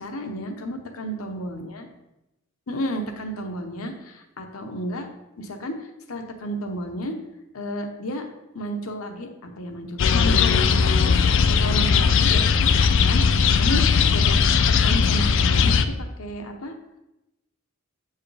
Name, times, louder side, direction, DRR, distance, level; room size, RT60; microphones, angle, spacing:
voice 1, 0.0-1.9 2.7-5.1 5.4-7.1 7.5-8.3 8.5-12.7 13.0-15.7 16.2-16.7, equal, 80° left, 5 dB, 0.9 m, -32 dB
sound 1, 10.0-15.9, left 6 dB, 60° left, 0.4 m, -18 dB
7.7 x 4.7 x 3.3 m, 0.92 s
head